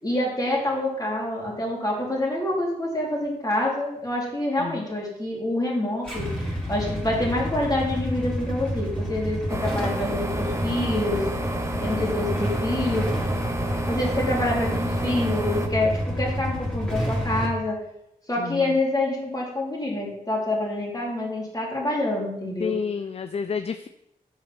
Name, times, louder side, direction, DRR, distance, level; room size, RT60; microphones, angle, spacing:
voice 1, 0.0-11.3 11.8-13.1 13.9-17.8 18.3-22.8, left 1 dB, 25° left, -3 dB, 2.9 m, -27 dB
Motorcycle / Engine starting / Idling, 6.0-17.5, equal, 5° left, 2.8 m, -29 dB
sound 1, 9.5-15.7, right 1 dB, 20° right, 0.8 m, -30 dB
voice 2, 22.6-23.9, left 6 dB, 40° left, 10 dB, 0.4 m, -30 dB
6.9 x 4.9 x 5.7 m, 0.81 s
cardioid pair, 65°, 15 cm